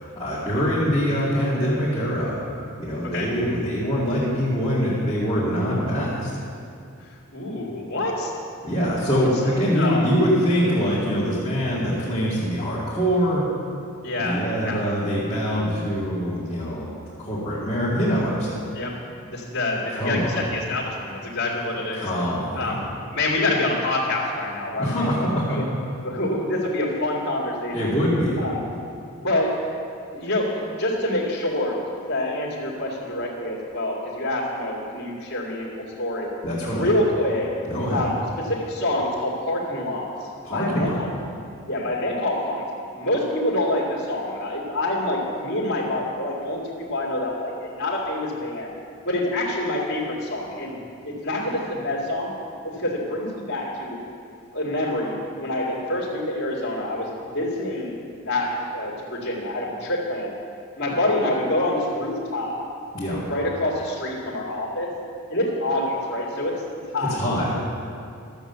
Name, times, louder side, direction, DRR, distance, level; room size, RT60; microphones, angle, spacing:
voice 1, 0.0-2.3 2.8-6.3 8.6-13.5 14.2-16.9 17.2-18.7 19.9-20.4 21.9-22.8 24.8-25.6 27.7-28.4 36.4-36.9 37.7-38.0 40.4-41.0 62.9-63.3 67.0-67.5, equal, 20° left, -11 dB, 2.3 m, -24 dB
voice 2, 7.3-8.3 9.2-9.3 9.7-10.1 14.0-14.9 18.7-22.1 22.6-25.6 26.0-27.7 28.4-28.6 29.2-29.5 30.1-31.7 32.1-35.7 36.0-36.3 36.7-37.5 37.9-40.1 40.4-41.1 41.7-42.7 42.9-48.7 49.1-50.8 51.0-52.3 52.6-54.0 54.5-57.9 58.2-60.3 60.8-62.6 63.3-64.9 65.3-66.5 66.9-67.2, left 1 dB, 55° left, -8 dB, 2.2 m, -26 dB
13.0 x 7.3 x 6.9 m, 2.4 s
head